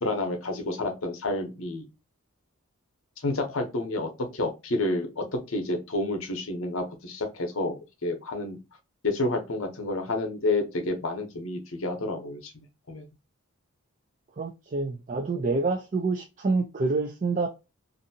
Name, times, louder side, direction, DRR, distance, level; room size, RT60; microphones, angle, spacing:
voice 1, 0.0-1.9 3.2-8.6 9.0-12.5 12.9-13.1, left 2 dB, 65° left, 0.8 m, -29 dB
voice 2, 14.4-17.5, right 3 dB, 35° right, 0.3 m, -27 dB
2.6 x 2.5 x 2.6 m
head